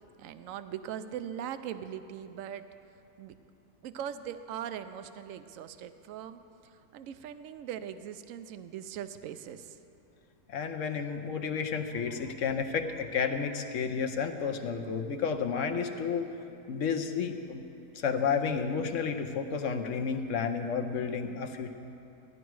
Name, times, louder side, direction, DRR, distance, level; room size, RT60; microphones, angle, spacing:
voice 1, 0.2-2.7 3.2-3.3 3.8-9.8, right 9 dB, 70° right, 11 dB, 0.9 m, -40 dB
voice 2, 10.5-16.3 16.7-17.6 18.0-21.7, left 6 dB, 60° left, 6 dB, 1.0 m, -31 dB
15.5 x 11.0 x 4.7 m, 2.7 s
omnidirectional pair, 1.7 m